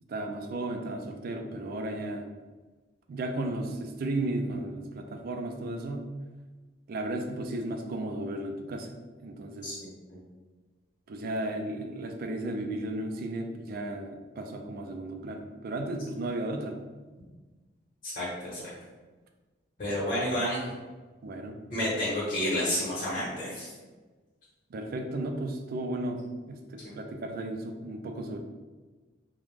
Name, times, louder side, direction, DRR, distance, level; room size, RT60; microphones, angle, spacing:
voice 1, 0.1-2.3 3.1-6.1 6.9-8.9 9.2-9.7 11.1-16.8 21.2-21.6 24.7-26.2 26.5-28.4, right 1 dB, 50° right, 4 dB, 0.3 m, -34 dB
voice 2, 9.6-10.2 18.0-18.7 19.8-20.7 21.7-23.7, left 1 dB, 45° left, -8 dB, 0.8 m, -30 dB
2.4 x 2.1 x 3.2 m, 1.3 s
head